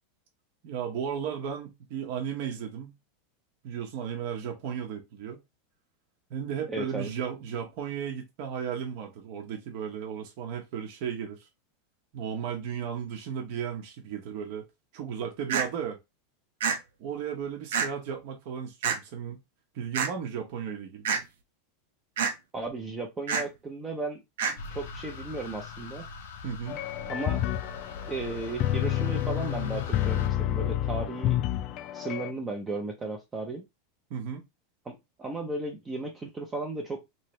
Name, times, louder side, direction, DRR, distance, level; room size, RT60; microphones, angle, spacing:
voice 1, 0.6-3.0 3.6-5.4 6.3-11.5 12.1-14.7 14.9-16.0 17.0-19.4 19.7-21.1 26.4-26.8 34.1-34.4, right 8 dB, 55° right, 1.0 m, -35 dB
voice 2, 6.7-7.1 22.5-24.2 24.7-26.0 27.1-27.4 28.1-31.4 31.9-33.6 34.9-37.0, right 3 dB, 15° right, 0.6 m, -35 dB
sound 1, 15.5-15.7 16.6-16.8 17.7-17.9 18.8-19.0 19.9-20.1 21.0-21.2 22.2-22.3 23.3-23.5 24.4-24.5, right 6 dB, 90° right, 0.9 m, -26 dB
sound 2, 24.6-30.3, left 4 dB, 80° left, 0.8 m, -41 dB
sound 3, 26.7-32.3, left 13 dB, 35° left, 0.3 m, -29 dB
3.2 x 2.9 x 3.2 m
supercardioid pair, 155°, 0 cm